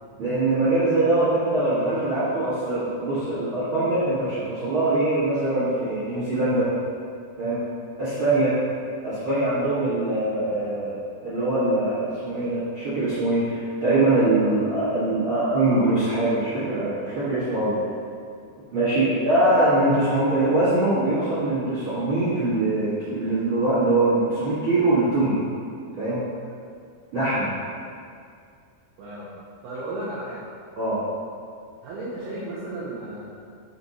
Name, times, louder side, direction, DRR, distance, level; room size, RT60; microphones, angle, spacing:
voice 1, 0.2-6.6 7.4-7.6 8.0-8.6 9.0-11.0 11.2-17.7 18.7-25.4 26.0-26.2 27.1-27.5 30.7-31.0, right 2 dB, 50° right, -13 dB, 1.5 m, -22 dB
voice 2, 29.0-29.3 29.6-30.4 31.8-33.4, right 1 dB, 75° right, -8 dB, 2.6 m, -34 dB
7.1 x 4.4 x 4.1 m, 2.3 s
omnidirectional pair, 5.1 m